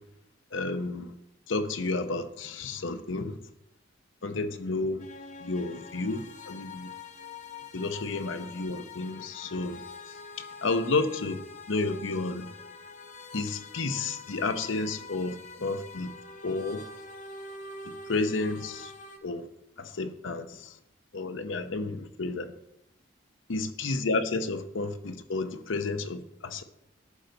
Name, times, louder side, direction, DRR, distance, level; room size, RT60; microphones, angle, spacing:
voice 1, 0.5-1.1 1.5-3.4 4.2-5.0 5.4-6.9 7.7-9.8 10.6-11.4 11.7-12.5 13.3-16.1 16.4-16.8 17.9-18.9 19.2-19.5 19.8-20.7 21.1-22.5 23.5-26.6, left 3 dB, 75° left, 10 dB, 0.8 m, -31 dB
sound 1, 5.0-19.2, left 4 dB, 35° left, 0.7 m, -45 dB
11.5 x 3.9 x 6.6 m, 0.83 s
head